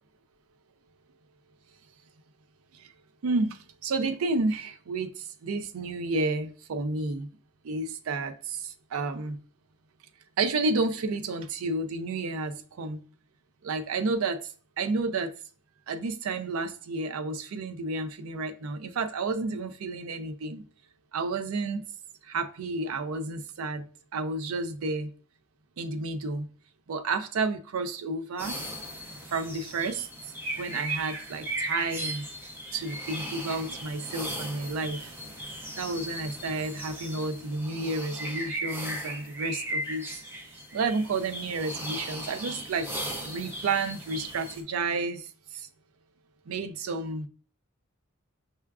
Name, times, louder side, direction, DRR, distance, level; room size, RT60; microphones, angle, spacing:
voice 1, 3.2-7.3 7.6-9.4 10.4-13.0 13.6-15.3 15.9-20.6 21.1-21.8 22.2-23.8 24.1-25.1 25.8-26.5 26.9-28.6 29.3-30.1 30.6-32.3 32.7-35.1 35.8-40.1 40.7-42.9 43.2-45.7 46.5-47.3, right 3 dB, 75° right, 0.4 m, -31 dB
sound 1, 28.4-44.6, right 1 dB, 10° right, 0.5 m, -37 dB
5.4 x 2.3 x 2.3 m
head